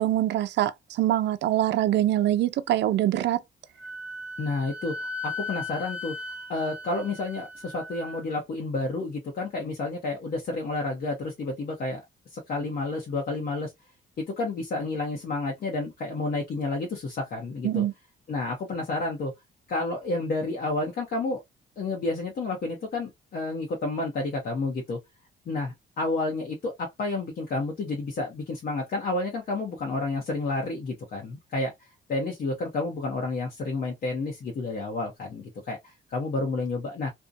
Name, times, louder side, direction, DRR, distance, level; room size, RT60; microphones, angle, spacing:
voice 1, 0.0-3.4 17.6-17.9, right 13 dB, 65° right, 0.4 m, -24 dB
Wind instrument woodwind instrument, 3.8-8.2, left 3 dB, 5° right, 0.5 m, -37 dB
voice 2, 4.4-6.1 6.5-12.0 12.3-13.7 14.2-17.8 18.3-19.3 19.7-21.4 21.8-25.0 25.5-37.1, left 2 dB, 50° left, 0.7 m, -30 dB
2.6 x 2.1 x 2.4 m
cardioid pair, 90°, 20 cm